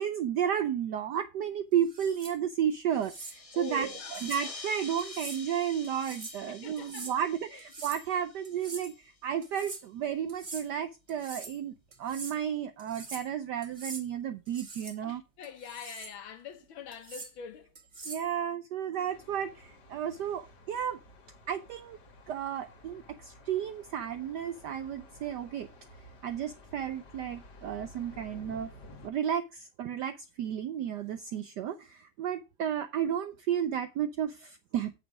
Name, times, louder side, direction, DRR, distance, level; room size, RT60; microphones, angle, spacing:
voice 1, 0.0-3.9 4.2-15.2 18.1-21.0 21.5-22.0 22.3-25.7 26.2-28.7 29.0-34.9, right 9 dB, 80° right, 0.9 m, -33 dB
sound 1, 1.8-2.4 3.0-3.4 4.1-4.4 5.0-5.4 5.8-6.4 6.8-7.2 7.6-8.1 8.4-8.9 9.4-9.8 10.3-10.7 11.1-11.6 11.9-12.4 12.8-13.3 13.6-14.1 14.5-15.0 15.4-16.1 16.9-17.3 17.8-18.3, right 3 dB, 25° right, 1.5 m, -44 dB
sound 2, 3.0-9.1, left 3 dB, 35° left, 0.5 m, -46 dB
voice 2, 3.5-4.2 6.5-7.1 15.0-17.7, left 7 dB, 70° left, 1.8 m, -44 dB
Thunder, 19.1-29.1, left 1 dB, 50° left, 2.2 m, -53 dB
8.2 x 6.4 x 4.9 m
omnidirectional pair, 2.4 m